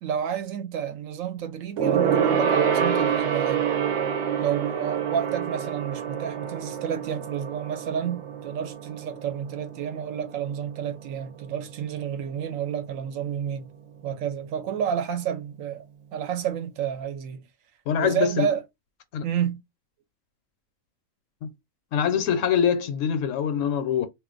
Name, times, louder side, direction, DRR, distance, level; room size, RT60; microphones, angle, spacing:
voice 1, 0.0-3.8 4.4-13.7 14.0-15.8 16.1-17.4 18.0-18.6 19.2-19.6, right 8 dB, 85° right, 1.0 m, -30 dB
Gong, 1.8-11.5 11.8-12.1 12.4-12.5, right 8 dB, 65° right, 0.9 m, -27 dB
voice 2, 17.9-18.5 19.1-19.2 21.4-21.5 21.9-24.1, left 8 dB, 75° left, 1.0 m, -24 dB
2.5 x 2.2 x 3.7 m
omnidirectional pair, 1.4 m